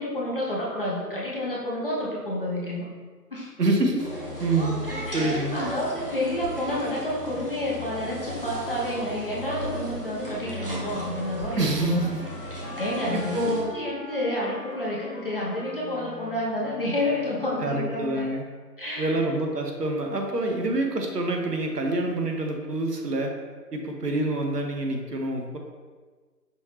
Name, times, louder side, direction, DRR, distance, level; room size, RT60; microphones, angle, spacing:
voice 1, 0.0-2.9 3.3-3.5 5.1-12.1 12.8-18.3 18.8-19.2, left 1 dB, 35° left, -5 dB, 0.8 m, -30 dB
voice 2, 3.6-4.1 4.4-4.8 5.1-5.6 11.6-12.2 13.1-13.7 17.6-18.4 19.0-23.3 23.7-25.6, right 2 dB, 70° right, 2 dB, 0.9 m, -26 dB
sound 1, 4.0-13.6, equal, 35° right, 0.8 m, -35 dB
Wind instrument woodwind instrument, 10.5-17.9, left 2 dB, 75° left, 1.1 m, -42 dB
5.6 x 3.0 x 3.1 m, 1.4 s
figure-of-eight pair, 160°, 49 cm